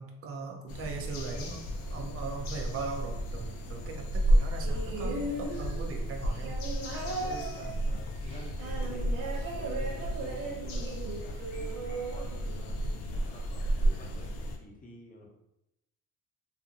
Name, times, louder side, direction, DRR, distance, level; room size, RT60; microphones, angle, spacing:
voice 1, 0.0-1.6 1.9-6.6, right 4 dB, 40° right, 2 dB, 0.6 m, -39 dB
sound 1, 0.7-14.6, right 1 dB, 75° left, 0.5 m, -32 dB
sound 2, 4.6-13.0 14.0-14.1, right 2 dB, 80° right, 0.9 m, -38 dB
voice 2, 7.2-12.8 13.1-15.3, left 1 dB, 25° left, -2 dB, 0.7 m, -50 dB
2.6 x 2.5 x 2.5 m, 0.85 s
cardioid pair, 105°, 34 cm